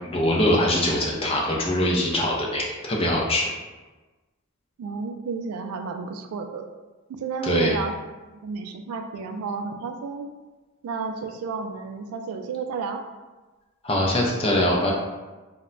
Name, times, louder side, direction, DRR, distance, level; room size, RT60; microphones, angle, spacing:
voice 1, 0.0-3.5 7.4-7.7 13.8-14.9, left 1 dB, 25° left, -3 dB, 0.4 m, -23 dB
voice 2, 4.8-6.7 7.1-7.9 8.3-10.3 10.8-13.1, right 5 dB, 85° right, 10 dB, 0.3 m, -31 dB
2.1 x 2.1 x 3.7 m, 1.2 s
head